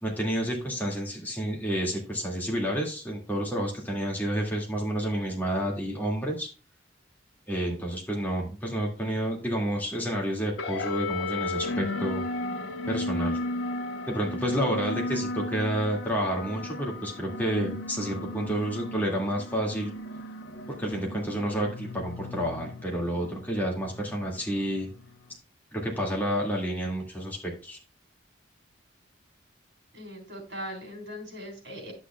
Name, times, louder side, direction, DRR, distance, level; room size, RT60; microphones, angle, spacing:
voice 1, 0.0-6.5 7.5-12.2 12.9-13.4 14.1-19.9 20.7-24.9 25.7-27.8, right 1 dB, 10° left, -2 dB, 1.9 m, -30 dB
sound 1, 10.6-25.3, left 2 dB, 85° left, 0.9 m, -35 dB
voice 2, 29.9-31.9, equal, 65° right, 2 dB, 3.6 m, -40 dB
11.5 x 6.3 x 2.2 m, 0.36 s
head